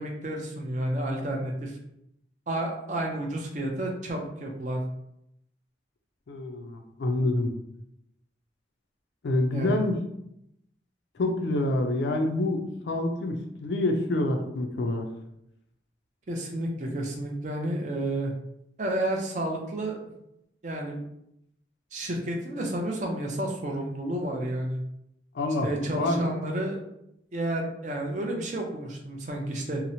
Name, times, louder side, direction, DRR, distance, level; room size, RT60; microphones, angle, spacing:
voice 1, 0.0-1.8 2.5-4.8 9.5-9.8 16.3-18.3 18.8-20.0 20.6-21.0 21.9-24.8 25.6-26.8 27.3-29.8, right 1 dB, 40° right, 1 dB, 0.4 m, -31 dB
voice 2, 6.3-7.5 9.2-10.0 11.2-15.1 25.3-26.4, left 2 dB, 65° left, 4 dB, 0.4 m, -27 dB
2.8 x 2.0 x 2.6 m, 0.78 s
head